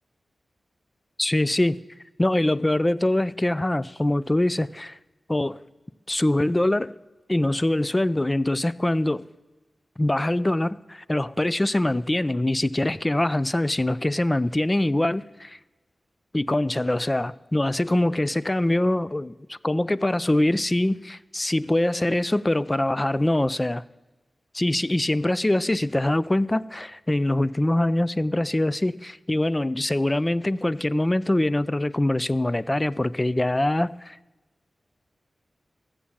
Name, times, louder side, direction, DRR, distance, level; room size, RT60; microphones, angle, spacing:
voice 1, 1.2-1.8 2.2-5.0 5.3-5.6 6.1-6.9 7.3-9.2 10.0-15.6 16.3-23.8 24.5-34.2, left 1 dB, 20° left, 0.3 m, -23 dB
14.0 x 7.3 x 8.6 m
wide cardioid pair, 120°, 0 cm